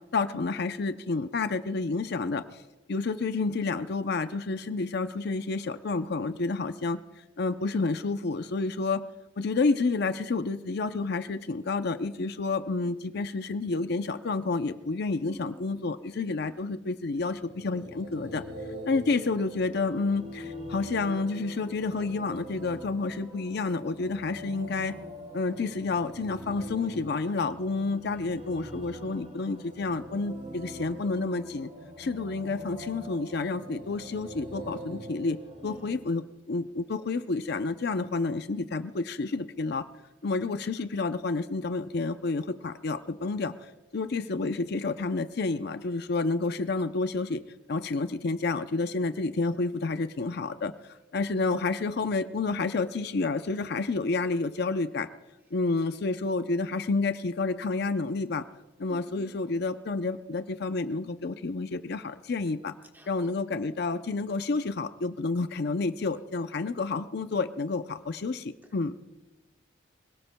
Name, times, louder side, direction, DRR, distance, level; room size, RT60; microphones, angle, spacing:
voice 1, 0.1-2.4 2.9-7.0 7.4-9.0 9.4-18.4 18.9-25.0 25.3-31.7 32.0-35.4 35.6-39.8 40.2-43.5 43.9-47.4 47.7-50.7 51.1-55.1 55.5-58.4 58.8-62.7 63.1-68.9, left 3 dB, 55° left, 10 dB, 0.5 m, -29 dB
voice 2, 15.2-15.8 35.6-35.9 58.9-59.3 62.9-63.1, right 1 dB, 10° right, 4 dB, 1.1 m, -46 dB
sound 1, 17.2-36.0, equal, 40° right, 2.6 m, -43 dB
25.0 x 17.5 x 2.2 m, 1.1 s
head